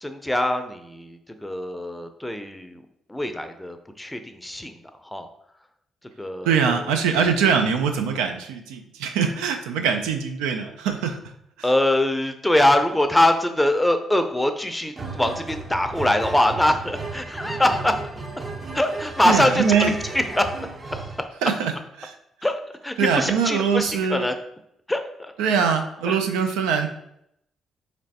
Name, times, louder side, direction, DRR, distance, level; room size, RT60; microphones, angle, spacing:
voice 1, 0.0-2.8 3.1-4.7 5.0-5.3 6.2-7.3 11.6-18.0 18.4-18.5 18.7-20.5 22.4-22.5 22.8-24.3 24.9-25.3 26.1-26.2, left 1 dB, 10° left, 7 dB, 0.5 m, -23 dB
voice 2, 6.5-11.2 11.6-11.7 19.2-20.0 21.4-21.7 22.0-22.1 23.0-24.3 25.4-26.9, right 6 dB, 85° right, 5 dB, 0.4 m, -22 dB
sound 1, 15.0-21.2, right 3 dB, 35° right, 0.7 m, -34 dB
3.9 x 3.1 x 2.8 m, 0.75 s
supercardioid pair, 55°, 0 cm